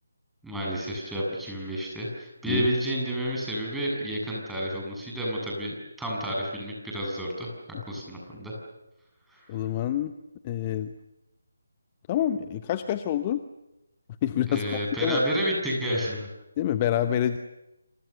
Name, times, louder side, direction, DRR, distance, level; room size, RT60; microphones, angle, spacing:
voice 1, 0.4-7.5 7.9-8.6 9.3-9.5 14.5-16.3, equal, 5° right, -3 dB, 7.4 m, -30 dB
voice 2, 9.5-10.1 10.4-10.9 12.1-13.4 14.2-14.6 15.0-15.2 16.6-17.4, left 11 dB, 25° left, 10 dB, 1.0 m, -27 dB
28.5 x 27.0 x 7.0 m, 0.94 s
figure-of-eight pair, 155°, 0 cm